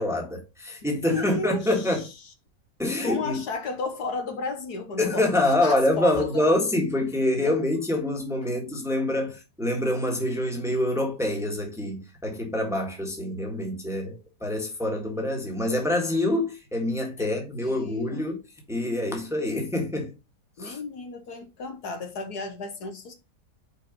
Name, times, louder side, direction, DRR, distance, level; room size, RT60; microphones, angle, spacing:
voice 1, 0.0-2.1 2.8-3.4 5.0-18.4 18.7-20.1 20.6-20.8, left 1 dB, ahead, 1.5 m, -26 dB
voice 2, 1.1-1.6 3.0-6.4 7.4-7.5 17.2-17.3 17.6-18.3 20.6-23.1, left 3 dB, 65° left, 1.5 m, -33 dB
5.5 x 4.3 x 5.1 m
omnidirectional pair, 1.9 m